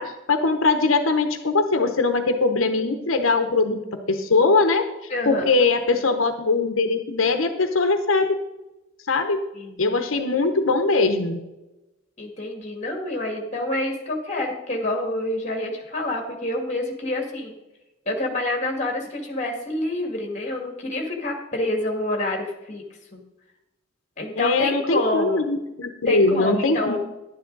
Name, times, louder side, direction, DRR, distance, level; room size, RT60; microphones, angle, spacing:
voice 1, 0.0-3.8 4.1-8.4 9.1-9.4 9.8-11.4 24.3-27.0, left 3 dB, 85° left, 7 dB, 0.9 m, -21 dB
voice 2, 5.1-5.6 9.6-10.0 12.2-17.5 18.1-22.8 23.1-23.2 24.2-25.4 26.1-27.0, left 1 dB, 35° left, 3 dB, 2.0 m, -27 dB
11.0 x 9.5 x 4.0 m, 0.98 s
head